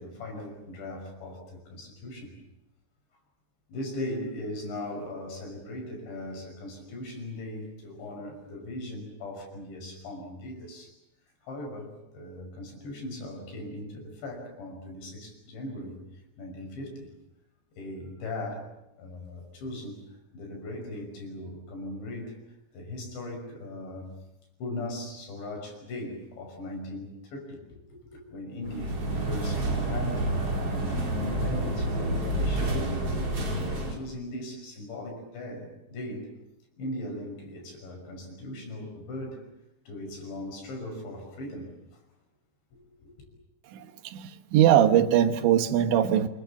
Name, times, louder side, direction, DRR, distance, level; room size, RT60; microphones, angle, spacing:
voice 1, 0.0-2.3 3.7-10.9 11.4-16.0 16.4-17.1 17.8-18.7 19.0-20.0 20.3-22.4 22.7-24.1 24.6-27.6 27.9-30.4 30.7-32.9 33.6-36.3 36.8-39.4 39.9-41.7 42.7-43.1, left 1 dB, 85° left, 2 dB, 8.3 m, -39 dB
sound 1, 28.6-33.9, right 1 dB, 35° right, 5.3 m, -29 dB
voice 2, 43.7-46.3, right 10 dB, 90° right, 9 dB, 3.6 m, -22 dB
27.5 x 23.0 x 7.2 m, 0.87 s
omnidirectional pair, 5.0 m